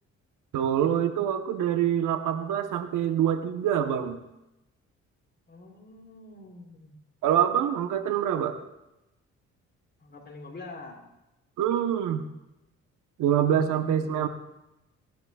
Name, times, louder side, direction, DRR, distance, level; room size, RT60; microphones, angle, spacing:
voice 1, 0.5-4.2 7.2-8.6 11.6-12.3 13.2-14.3, right 9 dB, 85° right, 8 dB, 1.1 m, -25 dB
voice 2, 5.5-7.0 10.0-11.0 13.6-14.3, left 3 dB, 35° left, 1 dB, 3.5 m, -46 dB
19.0 x 11.5 x 2.4 m, 0.93 s
cardioid pair, 90°, 30 cm